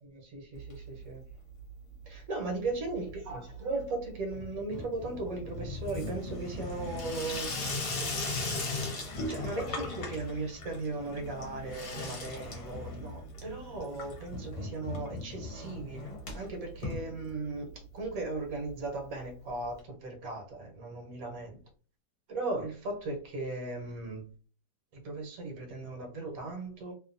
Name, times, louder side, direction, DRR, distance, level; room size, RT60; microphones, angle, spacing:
voice 1, 0.0-1.2 2.1-7.5 9.3-21.6 22.3-24.2 24.9-26.9, right 3 dB, 60° right, 1.2 m, -37 dB
Water tap faucet / Sink (filling or washing), 0.5-1.3 1.6-2.2 2.4-17.7 18.1-18.2 18.3-18.4 18.7-18.8 19.8-19.9, left 2 dB, 60° left, 1.1 m, -38 dB
2.9 x 2.4 x 2.4 m
omnidirectional pair, 1.9 m